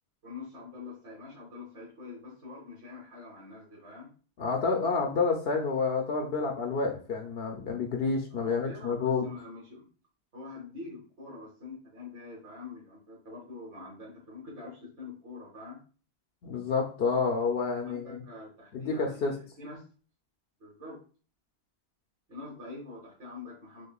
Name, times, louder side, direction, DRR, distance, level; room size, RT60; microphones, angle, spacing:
voice 1, 0.2-4.1 8.3-9.9 10.3-15.8 17.8-19.8 20.6-21.0 22.3-23.9, left 3 dB, 85° right, -5 dB, 1.5 m, -45 dB
voice 2, 4.4-9.3 16.4-18.2 18.7-19.3, left 4 dB, 70° left, 2 dB, 0.8 m, -29 dB
6.4 x 2.2 x 2.3 m, 0.38 s
omnidirectional pair, 1.1 m